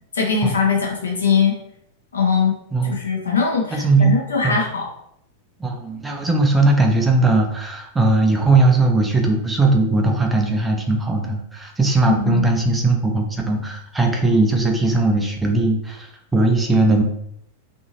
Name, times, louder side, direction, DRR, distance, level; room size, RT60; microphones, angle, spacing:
voice 1, 0.1-1.5 2.1-2.5 2.8-4.8 12.1-12.5, left 5 dB, 70° left, -1 dB, 0.8 m, -20 dB
voice 2, 2.7-3.0 3.7-4.2 4.4-4.6 5.6-17.0, right 2 dB, 10° right, 2 dB, 0.5 m, -18 dB
2.7 x 2.6 x 2.6 m, 0.72 s
figure-of-eight pair, 90°, 0 cm